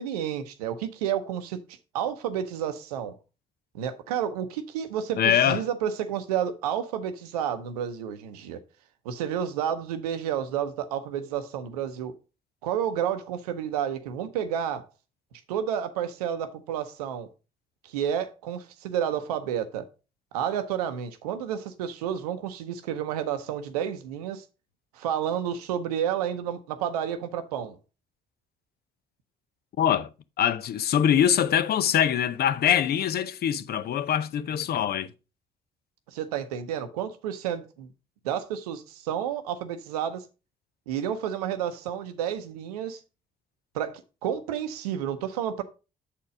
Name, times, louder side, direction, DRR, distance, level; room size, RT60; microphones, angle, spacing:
voice 1, 0.0-1.6 1.9-3.2 3.7-8.6 9.0-12.1 12.6-14.9 15.5-17.3 17.8-19.9 20.3-24.4 24.9-27.8 36.1-37.9 38.2-40.2 40.9-43.0 43.7-45.6, right 9 dB, 85° right, 0.7 m, -30 dB
voice 2, 5.2-5.7 29.8-30.1 30.4-35.1, left 9 dB, 55° left, 0.7 m, -23 dB
7.3 x 4.3 x 5.0 m
hypercardioid pair, 45°, 19 cm